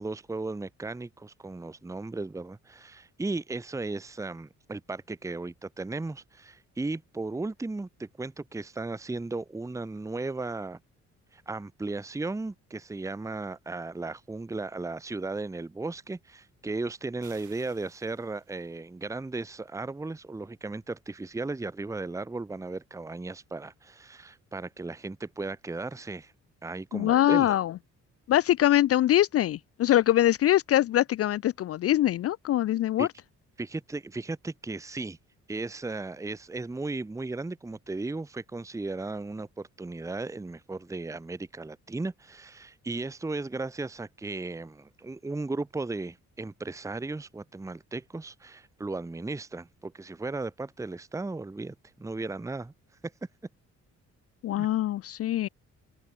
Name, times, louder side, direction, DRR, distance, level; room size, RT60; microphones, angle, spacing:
voice 1, 0.0-10.8 11.3-26.3 26.6-27.5 33.0-33.1 33.6-35.2 35.5-52.7 54.6-54.7, right 3 dB, 10° right, 0.8 m, -36 dB
sound 1, 17.2-18.8, right 14 dB, 75° right, 1.8 m, -57 dB
voice 2, 26.9-27.7 28.3-33.1 54.4-55.5, left 13 dB, 50° left, 0.4 m, -23 dB
open air
cardioid pair, 90°, 30 cm